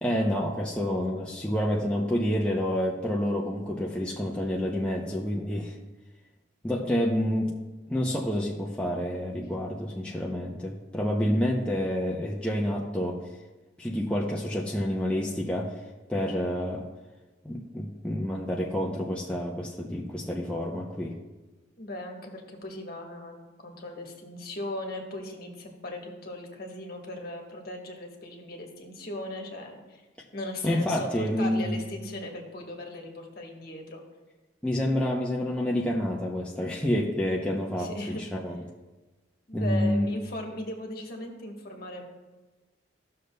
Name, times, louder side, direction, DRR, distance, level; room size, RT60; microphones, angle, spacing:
voice 1, 0.0-5.8 6.6-7.5 7.9-13.2 13.8-15.8 16.1-16.9 17.4-21.1 30.6-31.8 34.6-38.6 39.5-40.1, equal, 5° left, -3 dB, 0.5 m, -28 dB
voice 2, 21.8-30.0 30.3-34.0 37.8-38.2 39.5-42.0, left 1 dB, 50° left, 1 dB, 1.2 m, -38 dB
13.5 x 6.6 x 2.2 m, 1.2 s
head